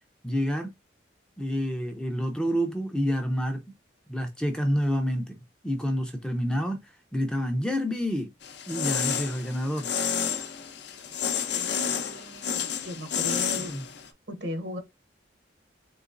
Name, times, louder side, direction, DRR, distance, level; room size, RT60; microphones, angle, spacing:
voice 1, 0.2-0.7 1.4-3.6 4.1-5.4 5.6-8.3 8.7-9.9 13.5-13.8, equal, 5° left, 0.5 m, -28 dB
sound 1, 8.4-14.1, left 7 dB, 60° left, 0.6 m, -30 dB
voice 2, 11.5-13.7 14.3-14.8, left 1 dB, 65° right, 0.9 m, -37 dB
3.9 x 2.9 x 2.5 m
head